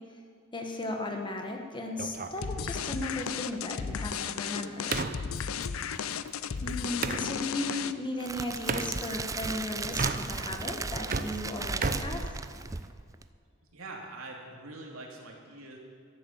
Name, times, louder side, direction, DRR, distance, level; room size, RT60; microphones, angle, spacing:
voice 1, 0.5-5.0 6.6-12.3, left 2 dB, 25° left, 3 dB, 1.5 m, -36 dB
sound 1, 2.0-7.3 8.7-8.9 9.9-10.6 10.9-12.9, right 4 dB, 45° right, 0.8 m, -35 dB
sound 2, 2.4-8.2, left 7 dB, 70° left, 0.5 m, -34 dB
voice 2, 5.7-6.3 13.7-15.8, right 2 dB, 80° right, 0 dB, 2.7 m, -45 dB
Crackle, 8.2-13.2, right 4 dB, 15° right, 0.4 m, -36 dB
13.5 x 11.0 x 7.3 m, 2.2 s
head